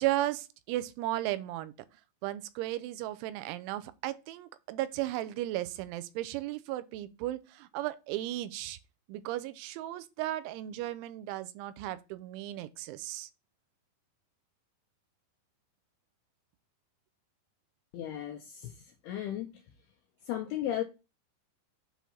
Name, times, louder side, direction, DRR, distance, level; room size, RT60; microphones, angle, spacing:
voice 1, 0.0-1.7 2.2-8.8 9.1-13.3, right 15 dB, 85° right, 3.0 m, -35 dB
voice 2, 17.9-19.6 20.2-20.8, left 11 dB, 85° left, 2.3 m, -35 dB
8.1 x 2.7 x 5.8 m
omnidirectional pair, 5.4 m